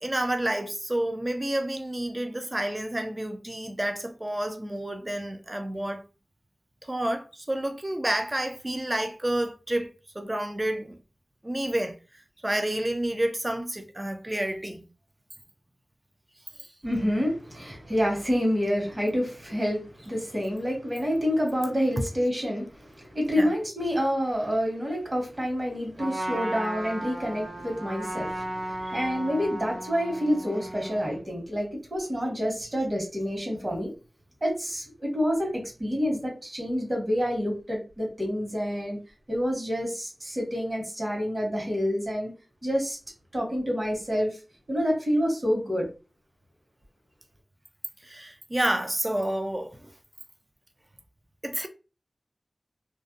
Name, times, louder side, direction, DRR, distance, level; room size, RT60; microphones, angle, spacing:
voice 1, 0.0-6.0 6.8-9.9 10.1-11.0 11.4-14.9 16.6-16.7 23.4-23.5 48.0-49.9 51.4-51.7, right 1 dB, 25° right, 0.4 m, -29 dB
voice 2, 16.8-33.9 34.4-39.0 39.3-42.3 42.6-43.0 43.3-44.4 44.7-45.9, equal, 40° right, 1.3 m, -28 dB
Trumpet, 26.0-31.2, right 1 dB, 70° right, 1.1 m, -35 dB
2.6 x 2.1 x 2.4 m
wide cardioid pair, 60°, 0 cm